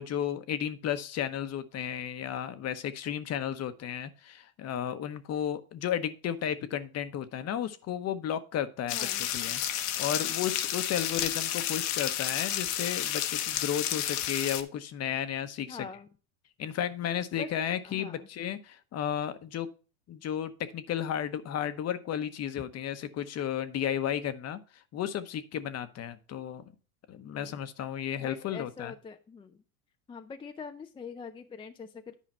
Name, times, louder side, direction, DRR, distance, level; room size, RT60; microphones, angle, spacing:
voice 1, 0.0-9.1 9.3-9.6 10.0-15.9 16.6-19.7 20.1-26.6 27.1-28.9, left 9 dB, 35° left, 12 dB, 0.9 m, -33 dB
sound 1, 8.9-14.6, left 12 dB, 65° left, 1.1 m, -31 dB
voice 2, 8.9-9.2 15.7-16.1 17.3-17.5 17.8-18.3 27.3-27.6 28.2-29.6 30.1-32.1, left 5 dB, 10° left, 6 dB, 0.4 m, -43 dB
10.0 x 5.0 x 4.3 m, 0.36 s
supercardioid pair, 105°, 43 cm